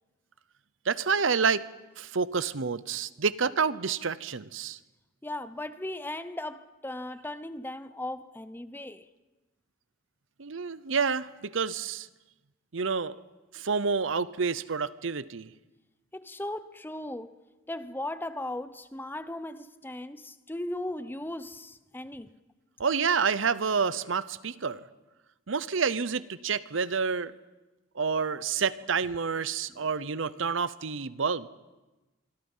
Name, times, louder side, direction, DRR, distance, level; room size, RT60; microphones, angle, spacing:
voice 1, 0.8-1.7 2.0-4.8 10.4-12.1 12.7-13.2 13.5-15.5 22.8-24.8 25.5-27.3 27.9-31.5, right 5 dB, 70° right, 0.8 m, -28 dB
voice 2, 5.2-9.1 16.1-17.4 17.7-22.3 28.2-28.4 29.7-29.9, left 1 dB, 10° left, 0.7 m, -37 dB
26.0 x 24.0 x 5.6 m
head